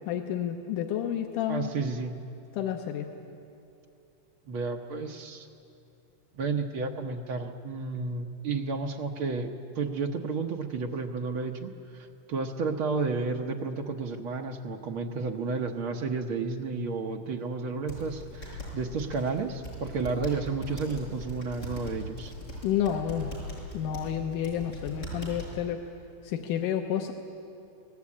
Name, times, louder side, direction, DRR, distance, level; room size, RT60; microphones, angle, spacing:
voice 1, 0.0-1.7 2.5-3.1 22.6-23.3 23.7-25.8 26.2-27.1, left 10 dB, 85° left, 4 dB, 2.5 m, -30 dB
voice 2, 1.5-2.1 4.5-5.5 6.4-9.5 9.7-22.3, right 4 dB, 70° right, 3 dB, 1.2 m, -32 dB
sound 1, 17.9-25.6, equal, 20° left, 5.8 m, -40 dB
25.0 x 18.5 x 8.5 m, 2.6 s
omnidirectional pair, 3.6 m